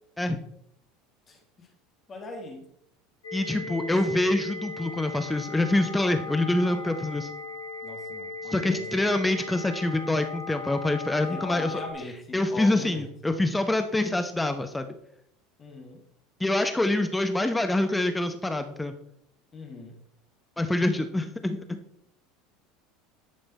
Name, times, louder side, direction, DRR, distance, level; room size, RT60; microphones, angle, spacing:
voice 1, 1.3-1.7 2.1-2.7 3.5-4.1 7.8-9.2 11.2-13.1 15.6-16.0 19.5-20.0, left 3 dB, 30° left, 2 dB, 2.0 m, -41 dB
Plutone - Pure Data Farnell, 3.2-11.9, left 3 dB, 75° left, 1.2 m, -38 dB
voice 2, 3.3-7.3 8.5-11.8 12.3-14.9 16.4-18.9 20.6-21.8, left 2 dB, 10° left, 7 dB, 0.8 m, -26 dB
10.5 x 5.4 x 4.1 m, 0.72 s
figure-of-eight pair, 75°, 0 cm